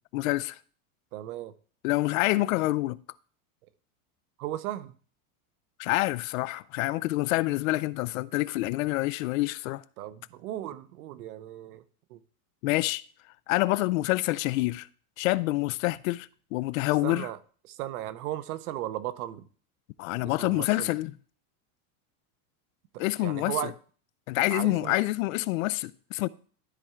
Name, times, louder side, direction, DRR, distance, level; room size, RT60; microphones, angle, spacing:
voice 1, 0.1-0.6 1.8-3.0 5.8-9.8 12.6-13.0 13.5-14.9 15.2-17.3 20.0-21.1 23.0-23.7 24.3-26.3, left 19 dB, 65° left, 0.5 m, -27 dB
voice 2, 1.1-1.5 4.4-4.9 10.0-11.8 12.1-12.2 17.0-17.4 17.7-19.4 20.2-20.9 22.9-23.7 24.5-25.0, right 13 dB, 80° right, 0.9 m, -36 dB
12.5 x 4.4 x 3.6 m
supercardioid pair, 170°, 44 cm